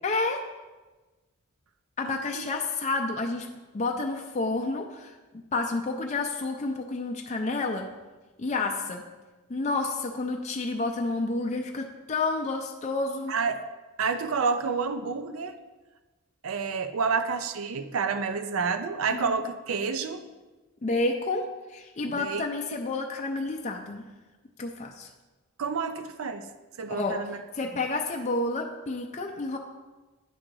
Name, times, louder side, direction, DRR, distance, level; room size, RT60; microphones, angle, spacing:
voice 1, 0.0-0.4 2.0-3.5 3.7-5.1 5.5-7.9 8.4-9.0 9.5-13.3 19.1-19.4 20.8-24.0 24.6-25.1 26.9-27.2 27.5-29.6, left 3 dB, 35° left, 2 dB, 0.5 m, -30 dB
voice 2, 2.0-2.5 13.3-13.6 14.0-15.6 16.4-20.2 22.1-22.4 25.6-26.5 26.8-27.4, right 5 dB, 70° right, 9 dB, 0.5 m, -29 dB
9.2 x 3.8 x 6.1 m, 1.2 s
head